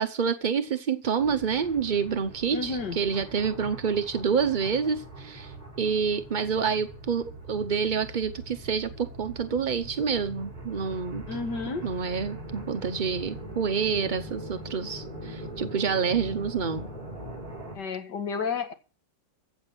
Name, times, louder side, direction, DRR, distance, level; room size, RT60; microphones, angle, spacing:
voice 1, 0.0-11.2 11.8-16.9, right 6 dB, 50° right, 0.5 m, -28 dB
sound 1, 1.2-17.8, right 1 dB, 20° right, 6.5 m, -41 dB
voice 2, 2.5-3.0 11.3-11.9 17.7-18.7, left 4 dB, 65° left, 2.4 m, -31 dB
15.5 x 6.3 x 7.9 m
omnidirectional pair, 2.0 m